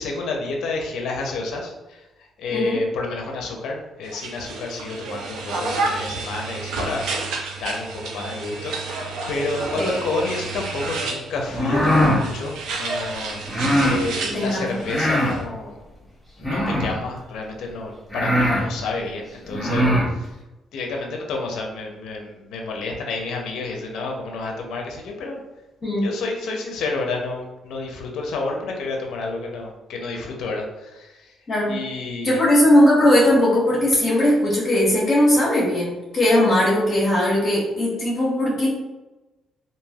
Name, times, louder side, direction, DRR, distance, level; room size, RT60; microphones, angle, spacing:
voice 1, 0.0-15.8 16.4-20.4 20.7-25.4 26.0-31.4 31.7-32.4, left 3 dB, 80° left, 1 dB, 0.5 m, -30 dB
sound 1, 4.0-15.4, right 3 dB, 85° right, 0.5 m, -30 dB
sound 2, 11.5-12.2 13.5-14.0 14.8-15.4 16.4-17.0 17.7-17.8 18.1-18.7 19.5-20.1, equal, 5° right, 0.9 m, -20 dB
voice 2, 14.3-14.8 25.8-26.1 31.5-31.8 32.2-38.7, left 1 dB, 35° left, -8 dB, 1.2 m, -19 dB
3.1 x 2.6 x 2.3 m, 1.1 s
cardioid pair, 90°, 0 cm